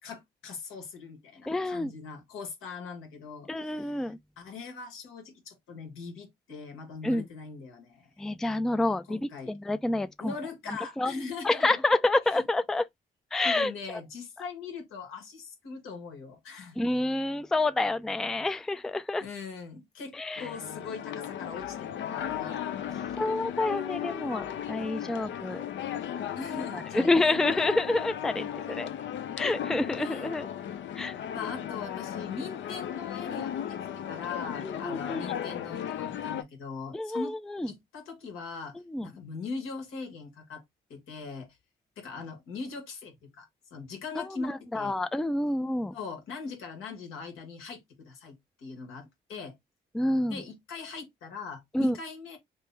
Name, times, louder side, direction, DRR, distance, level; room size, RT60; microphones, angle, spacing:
voice 1, 0.0-8.1 9.1-9.5 10.2-11.8 12.3-12.4 13.4-16.8 19.2-22.6 26.3-27.7 30.0-30.2 31.3-37.3 37.7-40.6 40.9-41.5 42.0-44.9 45.9-49.5 50.3-52.4, left 4 dB, 80° left, 1.5 m, -41 dB
voice 2, 1.5-1.9 3.5-4.2 7.0-7.3 8.2-10.3 10.7-11.1 11.4-12.8 13.3-13.7 16.8-19.2 20.1-20.5 23.1-25.6 26.7-28.9 29.4-30.5 30.9-31.2 34.6-35.3 36.9-37.7 38.7-39.1 44.2-46.0 49.9-50.4 51.7-52.0, left 2 dB, ahead, 0.4 m, -28 dB
sound 1, 20.4-36.4, left 10 dB, 60° left, 0.6 m, -36 dB
3.1 x 2.8 x 3.3 m
supercardioid pair, 60°, 21 cm